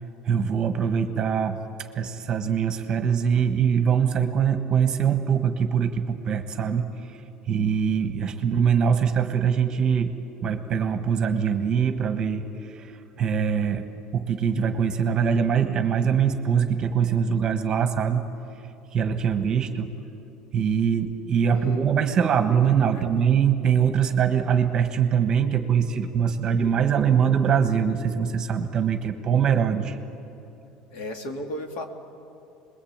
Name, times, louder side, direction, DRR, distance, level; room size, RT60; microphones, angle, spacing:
voice 1, 0.2-1.6 1.9-6.9 7.5-10.1 10.4-13.8 14.1-18.3 18.9-19.9 20.5-30.0, right 7 dB, 25° right, 8 dB, 1.4 m, -23 dB
voice 2, 21.5-21.9 22.9-23.1 30.9-31.9, left 1 dB, 60° left, 5 dB, 2.5 m, -34 dB
28.0 x 21.5 x 8.9 m, 2.8 s
cardioid pair, 170°, 3 cm